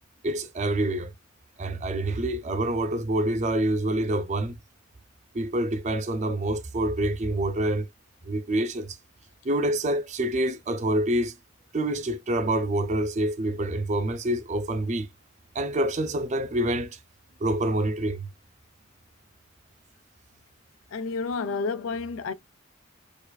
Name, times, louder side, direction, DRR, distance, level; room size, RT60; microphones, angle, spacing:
voice 1, 0.2-1.1 1.6-4.6 5.3-7.9 8.2-9.0 9.4-11.3 11.7-15.1 15.5-17.0 17.4-18.3, right 1 dB, 35° right, 0.5 m, -26 dB
voice 2, 20.9-22.3, left 4 dB, 75° left, 0.4 m, -30 dB
4.5 x 2.4 x 2.3 m
head